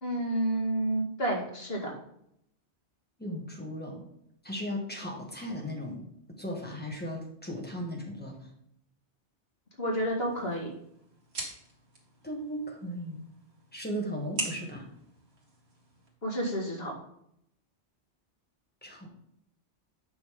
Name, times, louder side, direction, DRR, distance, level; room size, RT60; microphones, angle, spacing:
voice 1, 0.0-1.9 9.8-10.7 16.2-16.9, right 1 dB, 60° left, 0 dB, 2.2 m, -30 dB
voice 2, 3.2-4.0 4.4-6.0 6.4-8.3 12.2-13.2 13.7-14.8 18.8-19.1, equal, 10° left, -1 dB, 1.9 m, -36 dB
sound 1, 10.1-16.1, right 2 dB, 65° right, 2.3 m, -43 dB
8.5 x 5.9 x 3.7 m, 0.73 s
omnidirectional pair, 1.2 m